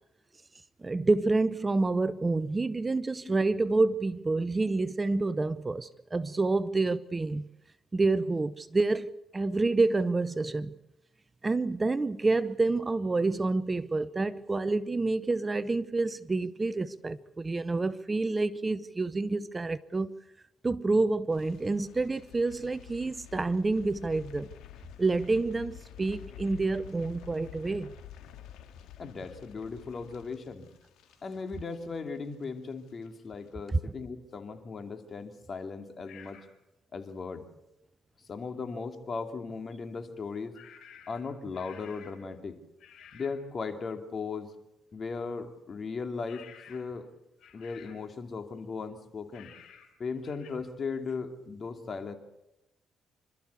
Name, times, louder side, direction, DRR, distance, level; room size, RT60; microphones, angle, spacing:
voice 1, 0.8-7.5 7.9-10.7 11.4-20.1 20.6-24.5 25.0-27.9, right 3 dB, 25° right, 0.7 m, -28 dB
sound 1, 21.3-32.4 32.7-33.1 33.4-33.5, left 12 dB, 90° left, 2.0 m, -49 dB
voice 2, 29.0-30.7 31.2-36.4 36.9-37.4 38.3-40.6 41.1-42.6 43.1-44.5 44.9-47.1 47.5-49.5 50.0-52.2, left 4 dB, 45° left, 2.6 m, -37 dB
sound 2, 36.1-36.5 40.5-42.3 42.8-43.4 46.3-47.0 47.4-48.1 49.3-49.9 50.2-50.5, left 8 dB, 75° left, 4.4 m, -52 dB
27.0 x 13.5 x 8.3 m
cardioid pair, 90°, 0 cm